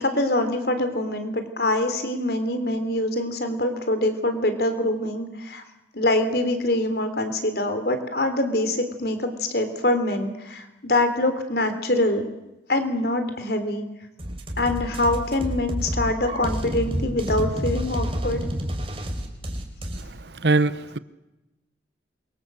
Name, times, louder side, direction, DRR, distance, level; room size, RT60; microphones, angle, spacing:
voice 1, 0.0-5.6 5.9-12.2 12.7-13.8 14.6-18.4, left 1 dB, 60° left, 8 dB, 3.6 m, -24 dB
sound 1, 14.2-20.0, equal, 30° right, 3.9 m, -29 dB
voice 2, 20.4-21.0, right 3 dB, 70° right, 15 dB, 1.0 m, -21 dB
27.5 x 23.5 x 8.0 m, 1.0 s
head